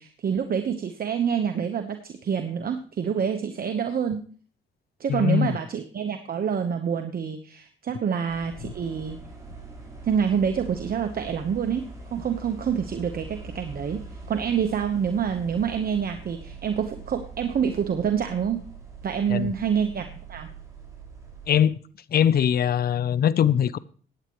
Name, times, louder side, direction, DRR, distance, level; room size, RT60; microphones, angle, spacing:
voice 1, 0.0-4.2 5.0-9.2 10.0-14.0 14.3-18.6 19.0-20.5, right 7 dB, 50° right, 1.1 m, -27 dB
voice 2, 5.1-5.5 8.6-8.7 19.3-19.5 21.5-21.8 22.1-23.8, left 9 dB, 50° left, 0.6 m, -21 dB
sound 1, 8.3-21.7, right 3 dB, 15° right, 6.3 m, -42 dB
15.5 x 9.8 x 3.1 m
cardioid pair, 90°, 20 cm